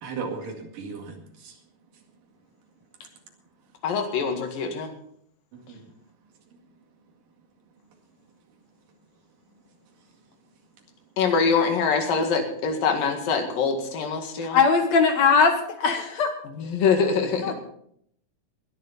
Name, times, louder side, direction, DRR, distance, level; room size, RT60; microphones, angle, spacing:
voice 1, 0.0-1.6 5.5-5.9 6.5-6.6, right 5 dB, 75° right, 2 dB, 3.8 m, -36 dB
voice 2, 3.8-4.9 11.2-14.6 16.6-17.5, left 5 dB, 80° left, 4 dB, 3.7 m, -24 dB
voice 3, 14.5-16.3 17.4-17.5, left 5 dB, 60° left, 6 dB, 2.2 m, -20 dB
21.0 x 10.5 x 4.2 m, 0.68 s
omnidirectional pair, 3.9 m